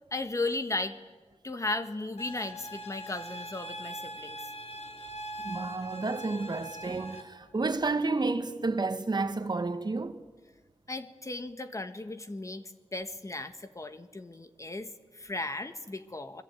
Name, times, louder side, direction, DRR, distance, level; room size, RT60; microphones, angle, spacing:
voice 1, 0.1-1.0 1.4-4.4 10.9-16.4, left 2 dB, 30° left, 1.4 m, -36 dB
sound 1, 2.2-7.2, right 1 dB, 80° left, 3.0 m, -42 dB
voice 2, 5.4-10.2, right 3 dB, 40° right, 1.6 m, -31 dB
29.5 x 21.5 x 9.1 m
wide cardioid pair, 115°, 11 cm